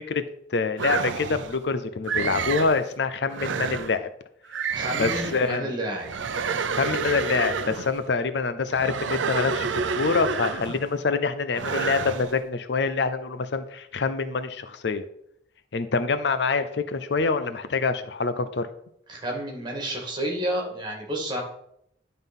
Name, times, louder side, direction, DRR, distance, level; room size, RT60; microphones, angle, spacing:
voice 1, 0.5-4.1 5.0-5.7 6.8-9.7 9.9-15.0 15.7-18.7, left 4 dB, 65° left, 11 dB, 0.6 m, -26 dB
sound 1, 0.8-1.6 2.1-2.8 3.3-4.0 4.5-5.5 6.0-8.0 8.7-10.9 11.5-12.3, right 5 dB, 85° right, 0.6 m, -29 dB
voice 2, 4.7-6.1 19.1-21.4, right 1 dB, 25° right, 0 dB, 2.1 m, -30 dB
11.0 x 3.9 x 5.4 m, 0.73 s
head